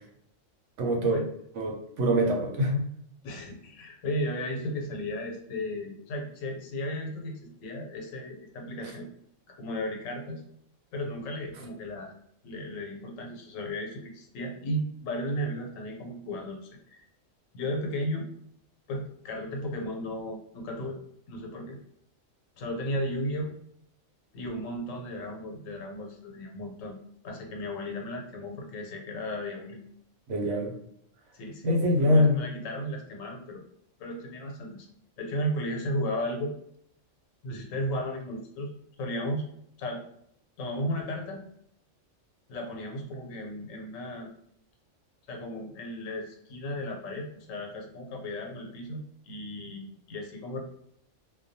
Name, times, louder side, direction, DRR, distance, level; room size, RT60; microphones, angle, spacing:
voice 1, 0.8-1.2 1.6-2.8 30.3-30.7 31.6-32.4, equal, 75° right, 1 dB, 0.9 m, -24 dB
voice 2, 3.2-9.1 9.5-10.4 10.9-12.1 12.4-17.0 17.5-18.3 18.9-21.0 21.3-21.8 22.6-23.5 24.3-27.0 27.2-29.8 31.3-33.6 34.0-34.9 35.2-36.5 37.4-38.7 39.0-39.5 39.8-40.0 40.6-41.4 42.5-44.3 45.3-50.6, equal, 85° left, 2 dB, 1.0 m, -35 dB
2.3 x 2.1 x 2.6 m, 0.71 s
omnidirectional pair, 1.3 m